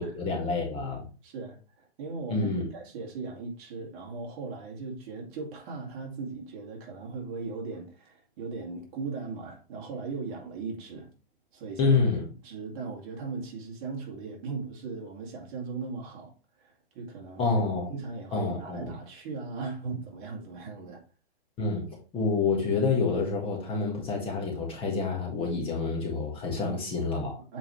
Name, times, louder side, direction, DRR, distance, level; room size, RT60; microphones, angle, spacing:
voice 1, 0.0-1.1 2.3-2.7 11.8-12.2 17.4-17.9 18.3-18.9 21.6-27.4, left 4 dB, 15° left, 1.6 m, -28 dB
voice 2, 1.2-11.1 11.5-12.0 12.4-16.3 16.6-17.6 17.9-21.0 26.7-27.2 27.5-27.6, right 4 dB, 35° right, 2.2 m, -38 dB
7.5 x 4.8 x 3.1 m
hypercardioid pair, 155°, 31 cm